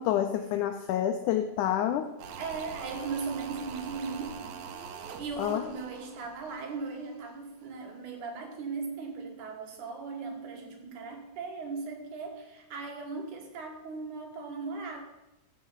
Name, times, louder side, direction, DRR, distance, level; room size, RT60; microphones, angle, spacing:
voice 1, 0.0-2.1 5.4-5.6, left 10 dB, 85° left, 7 dB, 1.7 m, -28 dB
sound 1, 2.2-7.4 7.6-7.7, right 6 dB, 85° right, 2.8 m, -44 dB
voice 2, 2.4-4.4 4.9-15.0, right 4 dB, 65° right, 3 dB, 2.6 m, -38 dB
15.0 x 5.5 x 5.6 m, 0.96 s
omnidirectional pair, 4.2 m